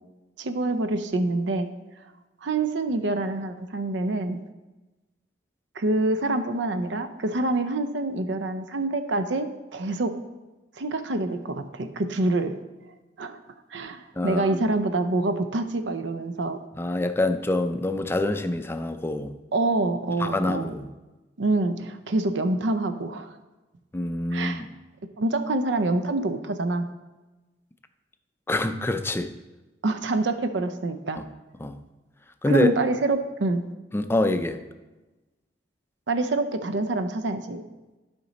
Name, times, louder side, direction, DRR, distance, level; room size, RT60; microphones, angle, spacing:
voice 1, 0.4-1.7 2.4-4.4 5.8-10.1 10.8-12.5 13.2-13.4 13.7-16.6 19.5-20.7 21.4-23.4 24.3-24.6 25.2-26.9 29.8-31.2 32.5-33.6 36.1-37.6, right 2 dB, 75° right, 9 dB, 0.6 m, -26 dB
voice 2, 14.2-14.6 16.8-19.3 20.2-20.9 23.9-24.7 28.5-29.3 31.6-31.8 32.4-32.7 33.9-34.6, left 2 dB, 15° left, 9 dB, 0.4 m, -25 dB
11.5 x 5.1 x 4.0 m, 1.1 s
head